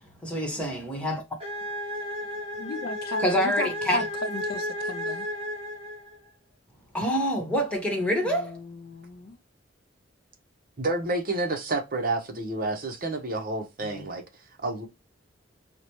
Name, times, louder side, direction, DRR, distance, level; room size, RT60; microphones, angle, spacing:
voice 1, 0.2-1.2 3.2-4.0 6.9-8.6, equal, 5° left, 1.1 m, -26 dB
sound 1, 1.4-6.3, left 1 dB, 30° right, 1.3 m, -33 dB
voice 2, 2.5-5.3 8.2-9.4 13.8-14.1, left 4 dB, 50° left, 0.4 m, -36 dB
voice 3, 10.8-14.2 14.6-14.9, right 2 dB, 50° right, 0.9 m, -29 dB
4.9 x 2.1 x 2.9 m
head